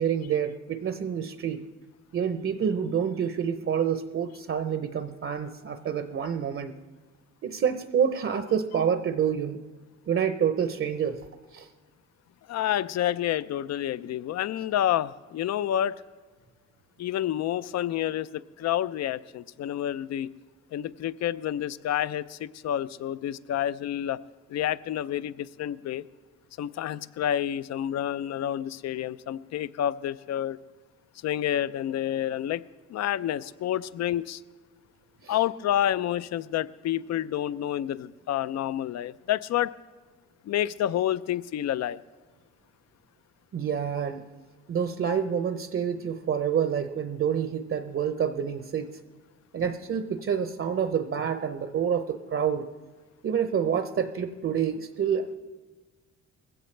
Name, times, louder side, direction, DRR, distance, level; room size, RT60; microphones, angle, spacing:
voice 1, 0.0-1.6 2.1-6.7 7.4-9.6 10.1-11.2 11.5-11.7 35.2-35.4 43.5-44.2 44.7-48.9 49.5-52.7 53.2-55.4, right 8 dB, 45° right, 9 dB, 0.7 m, -28 dB
voice 2, 12.5-16.0 17.0-20.3 20.7-24.2 24.5-26.0 26.6-30.6 31.2-32.6 32.9-34.4 35.3-39.7 40.5-42.0, left 11 dB, 60° left, 17 dB, 0.5 m, -29 dB
20.0 x 16.0 x 3.3 m, 1.3 s
cardioid pair, 90°, 30 cm